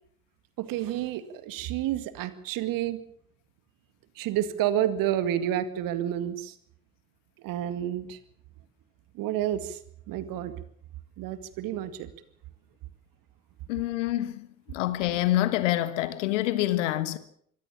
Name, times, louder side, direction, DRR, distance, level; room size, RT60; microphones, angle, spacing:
voice 1, 0.6-3.0 4.2-6.5 7.4-8.2 9.1-9.8 10.1-10.5 11.2-12.1, right 11 dB, 60° right, 2.0 m, -29 dB
voice 2, 13.7-17.2, left 15 dB, 70° left, 1.6 m, -27 dB
24.0 x 17.0 x 7.3 m
figure-of-eight pair, 50°, 38 cm